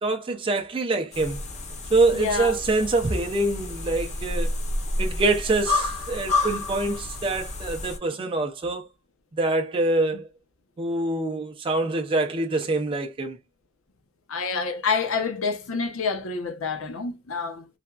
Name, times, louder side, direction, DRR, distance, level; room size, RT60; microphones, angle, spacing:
voice 1, 0.0-1.4 1.9-4.5 5.0-8.9 9.4-10.3 10.8-13.4, right 2 dB, 25° right, 0.4 m, -25 dB
sound 1, 1.1-8.0, left 2 dB, 35° left, 0.7 m, -30 dB
voice 2, 2.1-2.6 14.3-17.7, left 5 dB, 75° left, 0.7 m, -28 dB
3.3 x 2.2 x 2.3 m
head